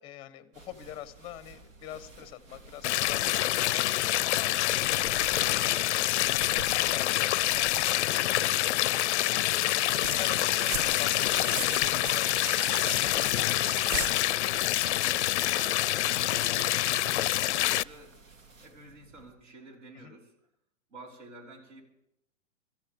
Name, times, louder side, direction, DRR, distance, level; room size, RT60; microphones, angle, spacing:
voice 1, 0.0-5.8 6.2-8.6 10.1-14.0 19.9-20.1, left 11 dB, 15° left, 14 dB, 0.7 m, -45 dB
sound 1, 0.5-19.3, right 3 dB, 80° right, 2.2 m, -53 dB
voice 2, 2.6-2.9 3.8-4.0 8.2-8.6 10.4-11.2 13.6-13.9 15.0-20.3 20.9-21.8, right 2 dB, 65° right, 0 dB, 5.1 m, -50 dB
sound 2, 2.8-17.8, left 15 dB, 65° left, 0.5 m, -26 dB
sound 3, 9.8-14.8, right 4 dB, 50° right, 2.1 m, -38 dB
25.5 x 13.5 x 3.6 m, 0.80 s
hypercardioid pair, 130°, 38 cm